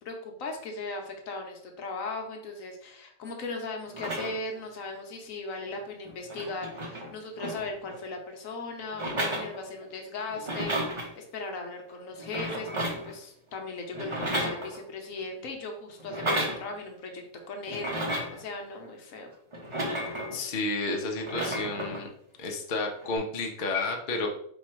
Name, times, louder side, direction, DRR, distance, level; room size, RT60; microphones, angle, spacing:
voice 1, 0.0-19.3, left 3 dB, 70° left, 3 dB, 1.2 m, -38 dB
sound 1, 3.9-4.6 5.7-5.8 6.0-8.0 8.9-10.0 10.3-11.1 12.2-13.1 13.9-15.0 16.0-16.6 17.7-18.4 19.5-20.4 21.1-22.0 23.0-23.2, right 1 dB, 25° right, 0.7 m, -33 dB
voice 2, 20.3-22.1 22.4-24.3, left 3 dB, 45° left, 1 dB, 0.7 m, -31 dB
4.5 x 2.4 x 4.3 m, 0.67 s
omnidirectional pair, 1.5 m